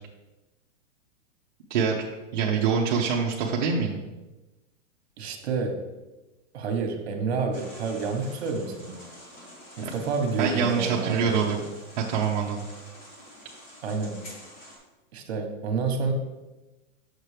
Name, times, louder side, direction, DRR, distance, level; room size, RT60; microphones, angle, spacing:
voice 1, 2.3-4.0 9.8-9.9 10.4-11.6 12.0-12.6, right 6 dB, 40° right, -3 dB, 0.6 m, -25 dB
voice 2, 5.2-5.8 6.5-8.9 9.8-11.4 13.8-14.3 15.1-16.1, right 4 dB, 55° right, 4 dB, 1.2 m, -29 dB
sound 1, 7.5-14.8, equal, 35° left, 1.7 m, -47 dB
6.5 x 6.0 x 3.3 m, 1.1 s
supercardioid pair, 170°, 37 cm